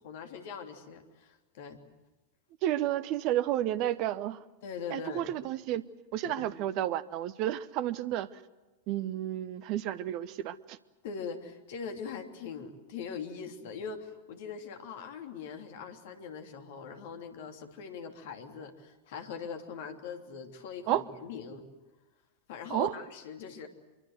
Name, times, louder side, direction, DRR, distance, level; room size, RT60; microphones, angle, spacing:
voice 1, 0.0-1.8 4.6-5.3 6.2-6.5 11.0-21.7 22.5-23.7, left 6 dB, 55° left, 5 dB, 3.0 m, -41 dB
voice 2, 2.6-4.4 4.9-5.8 6.1-8.4 8.9-10.8 20.9-21.0 22.7-23.0, right 12 dB, 40° right, 16 dB, 0.9 m, -31 dB
25.5 x 23.5 x 7.9 m, 1.1 s
figure-of-eight pair, 90°, 0 cm